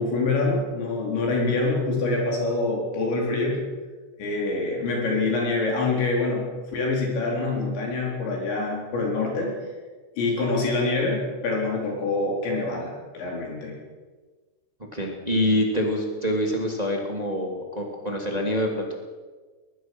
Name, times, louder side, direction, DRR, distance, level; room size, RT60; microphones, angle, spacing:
voice 1, 0.0-3.6 4.2-9.5 10.2-13.7, left 3 dB, 60° left, -1 dB, 6.6 m, -25 dB
voice 2, 14.9-18.9, left 1 dB, 15° right, 1 dB, 1.6 m, -26 dB
22.0 x 20.0 x 6.3 m, 1.4 s
omnidirectional pair, 5.9 m